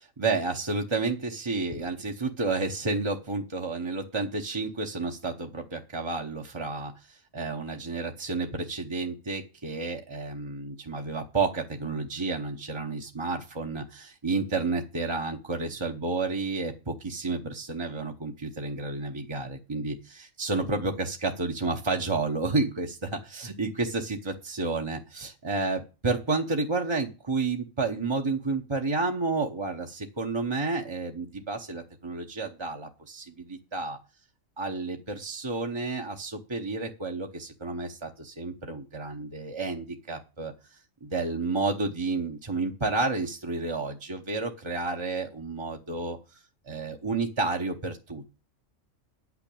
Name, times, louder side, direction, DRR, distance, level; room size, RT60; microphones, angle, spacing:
voice 1, 0.2-34.0 34.6-48.4, right 3 dB, 25° right, 2 dB, 0.9 m, -31 dB
9.6 x 6.1 x 8.4 m, 0.32 s
omnidirectional pair, 1.4 m